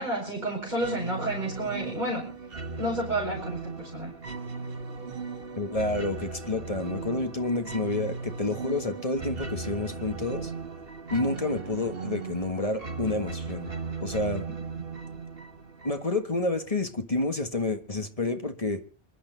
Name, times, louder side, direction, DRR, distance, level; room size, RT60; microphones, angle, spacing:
voice 1, 0.0-2.3 2.8-4.1, right 1 dB, 45° right, -3 dB, 5.2 m, -30 dB
sound 1, 0.8-16.3, right 4 dB, 65° right, 1.8 m, -37 dB
voice 2, 5.6-10.5 11.1-13.7 14.0-14.4 15.8-18.8, left 2 dB, 35° left, 6 dB, 1.7 m, -29 dB
26.5 x 11.5 x 3.9 m, 0.36 s
omnidirectional pair, 1.0 m